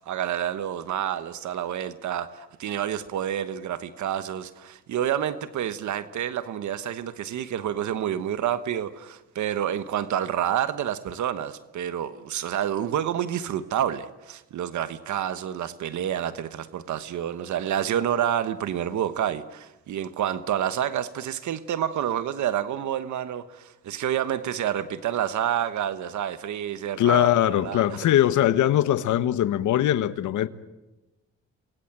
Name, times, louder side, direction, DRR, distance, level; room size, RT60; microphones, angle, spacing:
voice 1, 0.0-27.3 27.6-28.0, right 10 dB, 70° right, 1.3 m, -28 dB
voice 2, 27.0-30.5, left 12 dB, 75° left, 1.3 m, -21 dB
28.5 x 22.5 x 8.9 m
cardioid pair, 90°, 30 cm